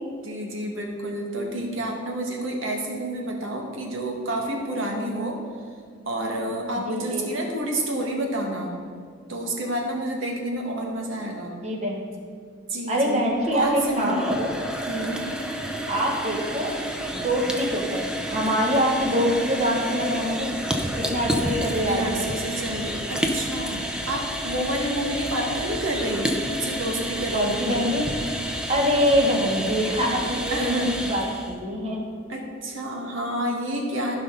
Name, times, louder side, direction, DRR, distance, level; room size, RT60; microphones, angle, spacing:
voice 1, 0.2-5.4 6.0-8.7 9.3-11.6 12.7-14.3 14.9-15.2 21.5-27.7 30.5-30.9 32.3-34.2, right 1 dB, 70° right, 0 dB, 1.7 m, -29 dB
voice 2, 6.9-7.2 11.6-12.0 12.9-13.7 14.0-14.5 15.9-16.7 17.1-20.6 21.0-22.3 27.3-28.0 28.7-32.0, equal, 35° right, -1 dB, 1.9 m, -24 dB
sound 1, 13.3-31.6, equal, 5° right, 0.8 m, -30 dB
15.5 x 5.4 x 3.8 m, 2.2 s
head